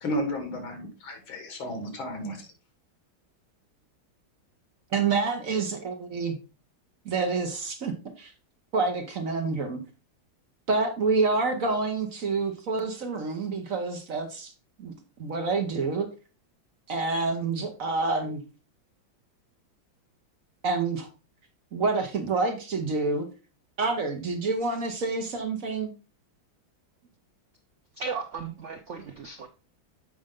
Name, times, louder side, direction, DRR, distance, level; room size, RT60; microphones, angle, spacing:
voice 1, 0.0-2.5, equal, 85° left, 5 dB, 2.5 m, -33 dB
voice 2, 4.9-6.4 7.0-8.3 8.7-9.8 10.7-14.5 14.8-16.1 16.9-18.4 20.6-21.1 21.7-23.3 23.8-25.9, right 4 dB, 50° right, 5 dB, 1.2 m, -28 dB
voice 3, 27.9-29.5, right 5 dB, 75° right, 6 dB, 0.6 m, -35 dB
7.6 x 5.1 x 3.6 m, 0.32 s
omnidirectional pair, 2.2 m